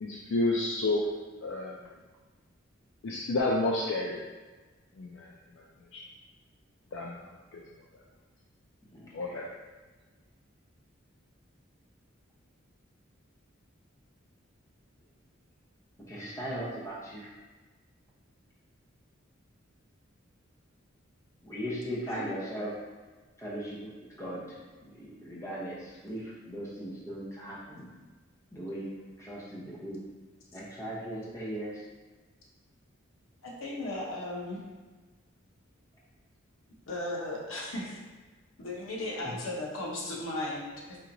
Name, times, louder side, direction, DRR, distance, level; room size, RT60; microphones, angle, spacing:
voice 1, 0.0-1.1 1.4-1.8 3.0-4.2 5.0-5.3 5.9-6.0 6.9-7.6 9.1-9.5, left 2 dB, 70° left, -3 dB, 0.4 m, -30 dB
voice 2, 8.9-9.4 16.1-17.3 21.4-22.7 23.4-24.4 25.0-27.9 28.5-28.9 29.2-30.0 30.5-31.8 39.2-39.3, equal, 15° left, -6 dB, 0.8 m, -38 dB
voice 3, 33.4-34.6 36.9-38.0 38.6-41.0, left 1 dB, 90° left, -3 dB, 0.8 m, -36 dB
4.3 x 2.8 x 2.6 m, 1.3 s
head